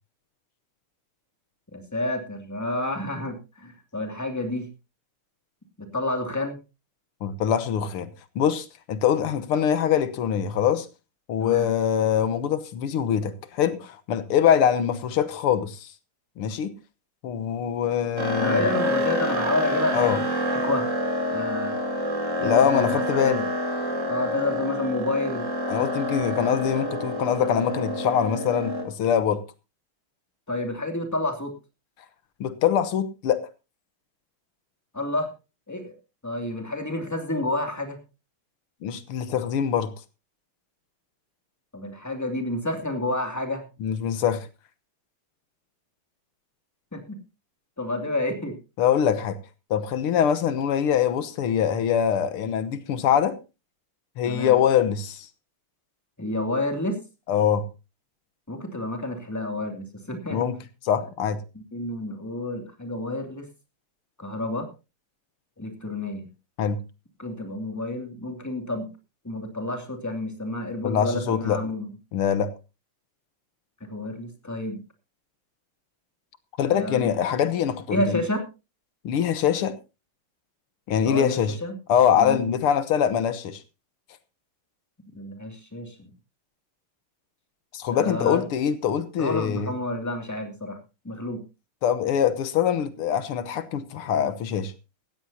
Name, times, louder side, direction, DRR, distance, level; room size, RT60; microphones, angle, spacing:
voice 1, 1.7-4.7 5.8-6.6 11.4-11.7 18.4-20.9 21.3-21.8 22.4-23.5 24.1-25.5 30.5-31.5 34.9-35.3 35.7-35.9 36.2-38.0 41.7-43.6 46.9-47.2 47.8-48.5 54.3-54.5 56.2-57.0 58.5-60.5 61.5-63.5 64.2-64.7 65.6-66.2 67.2-68.9 69.2-71.9 73.9-74.8 76.7-77.1 77.9-78.4 81.0-81.8 82.2-82.4 85.1-86.1 87.9-88.4 89.2-90.8 91.0-91.4, left 1 dB, 10° left, 2.5 m, -29 dB
voice 2, 7.2-8.1 8.4-10.9 11.3-15.9 16.4-16.8 17.2-18.7 19.9-20.2 22.4-23.4 25.7-29.4 32.4-33.5 38.8-39.9 43.8-44.5 48.8-49.4 49.7-53.4 54.2-55.3 57.3-57.7 60.3-61.4 66.6-66.8 70.8-71.6 72.1-72.5 76.6-78.2 79.0-79.8 80.9-81.6 81.9-83.6 87.7-89.7 91.8-94.7, left 8 dB, 80° left, 1.9 m, -23 dB
sound 1, 18.2-28.8, left 1 dB, 35° right, 3.2 m, -27 dB
17.5 x 14.5 x 2.8 m
omnidirectional pair, 2.4 m